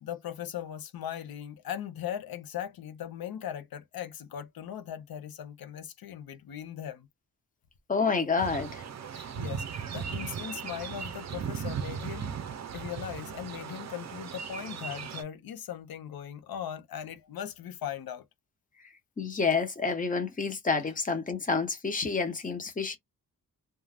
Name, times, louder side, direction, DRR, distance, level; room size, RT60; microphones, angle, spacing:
voice 1, 0.0-7.1 9.1-12.4 12.7-18.2, left 10 dB, 85° left, 0.6 m, -39 dB
voice 2, 7.9-8.8 19.2-23.0, left 4 dB, 25° left, 0.7 m, -29 dB
sound 1, 8.4-15.2, right 7 dB, 50° right, 0.5 m, -37 dB
2.4 x 2.2 x 3.2 m
wide cardioid pair, 150°, 35 cm